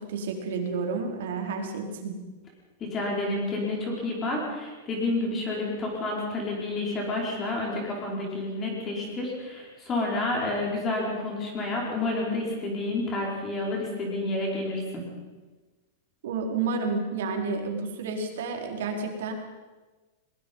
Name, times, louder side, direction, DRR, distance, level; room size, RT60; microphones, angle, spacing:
voice 1, 0.0-2.2 16.2-19.3, right 4 dB, 75° right, 2 dB, 4.3 m, -30 dB
voice 2, 2.8-15.1, left 2 dB, 20° left, -1 dB, 5.3 m, -29 dB
22.0 x 21.0 x 5.7 m, 1.3 s
supercardioid pair, 165°, 0 cm